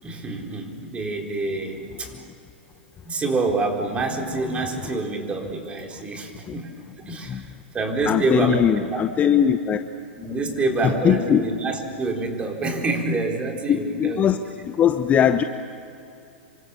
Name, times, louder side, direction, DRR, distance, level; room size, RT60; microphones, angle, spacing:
voice 1, 0.0-2.1 3.0-6.7 7.1-7.5 7.7-9.3 10.2-14.2, right 3 dB, 20° right, 2 dB, 4.2 m, -27 dB
voice 2, 8.1-9.8 11.0-11.5 13.7-14.4 14.7-15.4, left 9 dB, 25° left, 9 dB, 1.0 m, -20 dB
27.5 x 25.0 x 7.2 m, 2.6 s
figure-of-eight pair, 105°, 6 cm